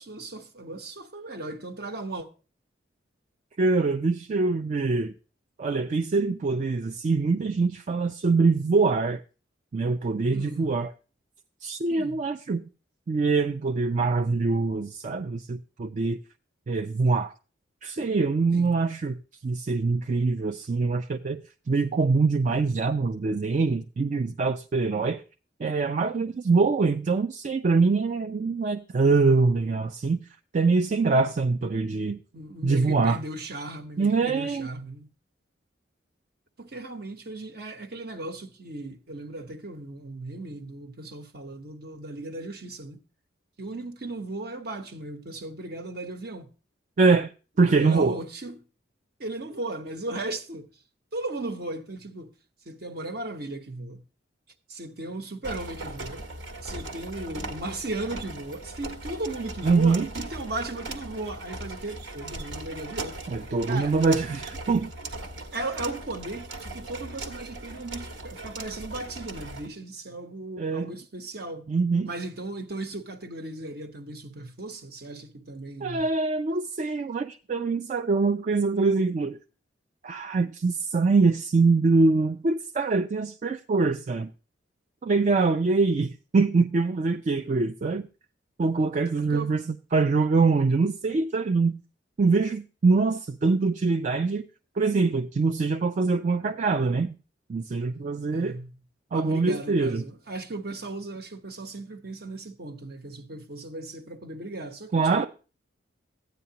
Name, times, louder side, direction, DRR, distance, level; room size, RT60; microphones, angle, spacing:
voice 1, 0.0-2.3 10.3-10.8 11.9-12.2 18.5-18.8 32.3-35.1 36.6-43.0 43.6-46.5 47.8-48.6 49.2-50.7 51.1-52.3 52.6-54.0 54.7-56.3 56.6-63.2 63.7-64.0 65.5-71.7 72.0-76.1 89.1-89.5 98.3-98.7 99.1-105.3, right 2 dB, 55° right, 1.1 m, -36 dB
voice 2, 3.6-5.1 5.6-9.2 9.7-10.9 11.6-12.6 13.1-16.2 16.7-17.3 17.8-19.2 19.4-21.4 21.7-25.2 25.6-30.2 30.5-32.2 32.6-33.2 34.0-34.7 47.0-47.3 47.6-48.2 59.6-60.1 63.3-64.9 70.6-70.9 71.7-72.1 75.8-79.4 80.0-84.3 85.0-88.0 88.6-91.7 92.2-94.4 94.8-97.2 97.5-98.6 99.1-100.0 104.9-105.3, right 4 dB, 40° right, 0.4 m, -24 dB
sound 1, 55.4-69.7, right 2 dB, 80° right, 1.5 m, -39 dB
13.5 x 9.4 x 2.8 m
head